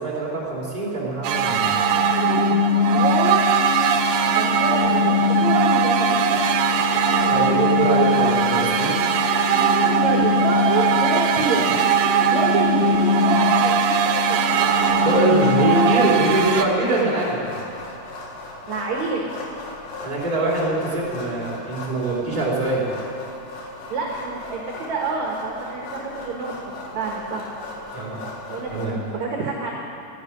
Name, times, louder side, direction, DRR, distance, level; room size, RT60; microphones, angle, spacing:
voice 1, 0.0-1.7 7.3-8.9 15.0-17.6 20.0-22.8 27.9-28.2 28.7-29.0, right 2 dB, 10° right, -4 dB, 2.8 m, -23 dB
sound 1, 1.2-16.6, right 3 dB, 75° right, 2.2 m, -19 dB
voice 2, 2.9-3.5 3.8-6.4 10.0-11.8 12.3-14.4 18.7-19.2 23.9-26.5 26.9-27.4 28.5-29.7, right 4 dB, 60° right, -1 dB, 2.2 m, -28 dB
sound 2, 3.6-15.7, left 9 dB, 90° left, 1.9 m, -34 dB
sound 3, 14.5-28.8, left 2 dB, 60° left, 3.2 m, -37 dB
13.0 x 10.5 x 9.8 m, 2.6 s
omnidirectional pair, 4.6 m